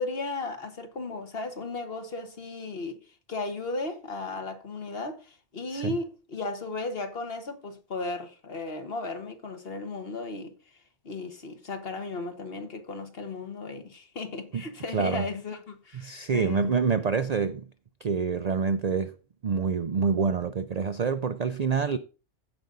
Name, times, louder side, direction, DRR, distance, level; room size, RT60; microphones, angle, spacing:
voice 1, 0.0-3.0 3.3-10.5 11.0-16.7, left 3 dB, 50° left, 1.5 m, -35 dB
voice 2, 14.9-15.3 15.9-17.7 18.0-19.1 19.4-22.0, right 5 dB, 50° right, 0.4 m, -27 dB
15.0 x 5.3 x 3.9 m
omnidirectional pair, 1.3 m